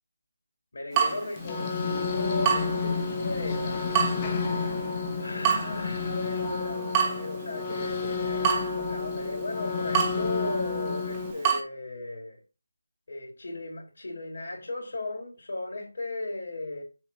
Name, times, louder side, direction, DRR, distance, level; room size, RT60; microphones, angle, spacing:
voice 1, 0.7-3.9 5.2-12.4 13.1-16.8, left 2 dB, 60° left, 2.9 m, -36 dB
Water tap faucet / Drip, 0.9-11.6, right 8 dB, 15° right, 1.0 m, -31 dB
sound 1, 1.4-11.3, left 4 dB, 25° left, 1.0 m, -30 dB
7.1 x 3.5 x 5.8 m
figure-of-eight pair, 160°, 0 cm